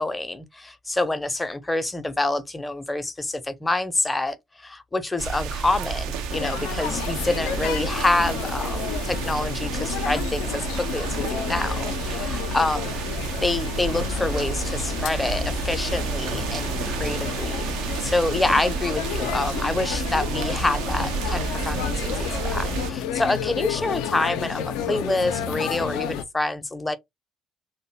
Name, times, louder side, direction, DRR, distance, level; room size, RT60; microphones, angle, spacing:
voice 1, 0.0-13.0 13.4-27.0, left 2 dB, 15° left, 0.5 m, -27 dB
sound 1, 5.2-22.9, right 5 dB, 65° right, 0.4 m, -30 dB
sound 2, 6.3-26.2, left 8 dB, 65° left, 0.3 m, -31 dB
2.6 x 2.1 x 2.7 m
hypercardioid pair, 50°, 0 cm